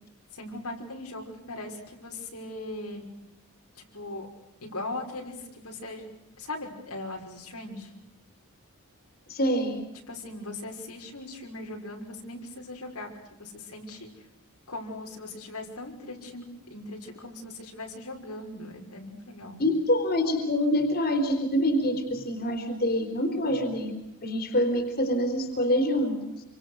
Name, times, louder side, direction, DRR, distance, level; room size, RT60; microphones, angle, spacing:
voice 1, 0.3-3.0 3.8-4.3 4.6-6.1 6.4-7.9 10.1-14.1 14.7-19.6, left 2 dB, 90° left, 1 dB, 5.8 m, -39 dB
voice 2, 9.3-9.8 19.6-26.2, equal, 45° left, 5 dB, 3.9 m, -26 dB
27.5 x 26.0 x 6.5 m, 0.93 s
head